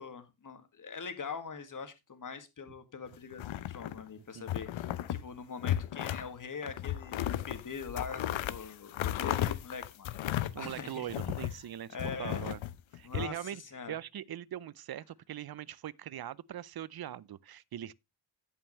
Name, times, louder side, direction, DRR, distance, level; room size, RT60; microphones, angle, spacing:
voice 1, 0.0-10.1 10.6-11.1 11.9-12.4 13.0-13.4 13.7-14.0, left 5 dB, 40° left, 1.9 m, -43 dB
sound 1, 3.3-4.1 4.5-5.2 5.6-6.3 6.6-11.6 12.0-13.3, left 12 dB, 70° left, 0.8 m, -35 dB
voice 2, 10.5-12.6 12.9-13.6 13.9-17.9, right 11 dB, 50° right, 0.6 m, -41 dB
16.5 x 5.6 x 3.1 m
cardioid pair, 100°, 48 cm